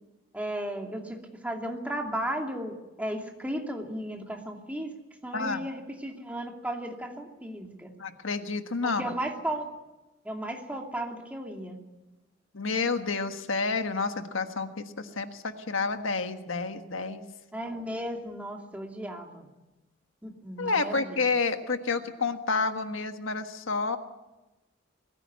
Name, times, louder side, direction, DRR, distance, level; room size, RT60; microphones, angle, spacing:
voice 1, 0.3-4.9 5.2-7.9 8.8-9.6 10.2-11.8 17.5-19.5 20.2-21.2, right 1 dB, 5° right, 1 dB, 2.6 m, -35 dB
voice 2, 5.3-5.6 8.0-9.1 12.5-17.2 20.6-24.0, left 4 dB, 80° left, 7 dB, 1.5 m, -29 dB
21.5 x 15.5 x 9.5 m, 1.1 s
head